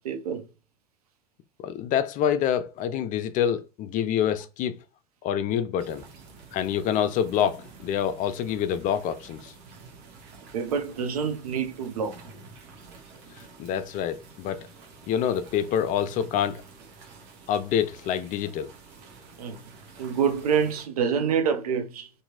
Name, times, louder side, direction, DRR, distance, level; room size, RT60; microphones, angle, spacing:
voice 1, 0.0-0.5 10.5-12.2 19.4-19.6 20.0-22.1, right 7 dB, 75° right, 0.5 m, -26 dB
voice 2, 1.6-4.8 5.2-6.0 6.5-9.5 13.6-14.7 15.1-16.6 17.5-18.7, left 9 dB, 45° left, 0.4 m, -26 dB
sound 1, 5.8-20.9, right 4 dB, 55° right, 0.9 m, -49 dB
2.9 x 2.6 x 2.3 m
figure-of-eight pair, 65°, 19 cm